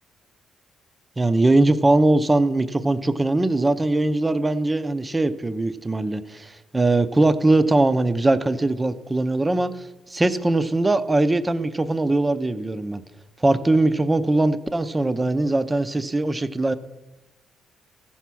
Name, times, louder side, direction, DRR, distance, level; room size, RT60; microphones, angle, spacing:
voice 1, 1.2-13.0 13.4-16.7, right 2 dB, 20° right, 11 dB, 0.6 m, -21 dB
14.5 x 5.7 x 6.1 m, 1.0 s
cardioid pair, 90°, 0 cm